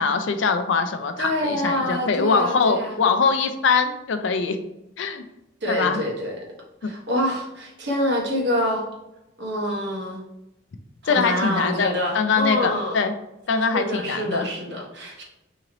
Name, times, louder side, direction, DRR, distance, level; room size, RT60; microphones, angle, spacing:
voice 1, 0.0-4.6 5.0-5.2 5.7-6.0 6.8-6.9 11.1-13.1 13.5-14.5, left 5 dB, 65° left, 8 dB, 0.4 m, -22 dB
voice 2, 1.2-3.0 5.6-6.4 6.8-8.8 9.4-10.2 11.0-13.0 13.7-15.2, equal, 55° right, -1 dB, 1.0 m, -26 dB
3.0 x 2.9 x 3.8 m, 0.93 s
head